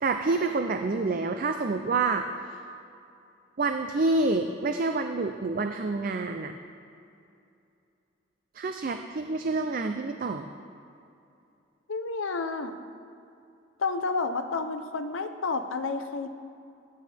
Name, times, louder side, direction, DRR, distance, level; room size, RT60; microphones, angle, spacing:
voice 1, 0.0-2.3 3.6-6.5 8.5-10.5, right 3 dB, 45° right, 6 dB, 0.4 m, -27 dB
voice 2, 11.9-12.7 13.8-16.3, left 4 dB, 80° left, 8 dB, 0.8 m, -30 dB
18.0 x 8.5 x 3.4 m, 2.6 s
head